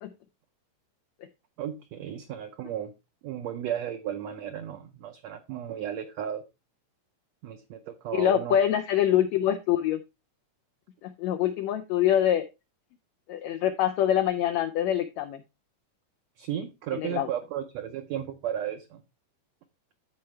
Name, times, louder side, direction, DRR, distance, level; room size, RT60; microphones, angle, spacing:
voice 1, 1.6-2.9 3.2-6.4 7.4-8.6 16.4-19.0, right 10 dB, 80° right, 6 dB, 1.5 m, -34 dB
voice 2, 8.1-10.0 11.0-12.5 13.3-15.4 16.9-17.3, left 11 dB, 85° left, 8 dB, 1.5 m, -25 dB
13.0 x 4.5 x 3.1 m, 0.25 s
omnidirectional pair, 3.8 m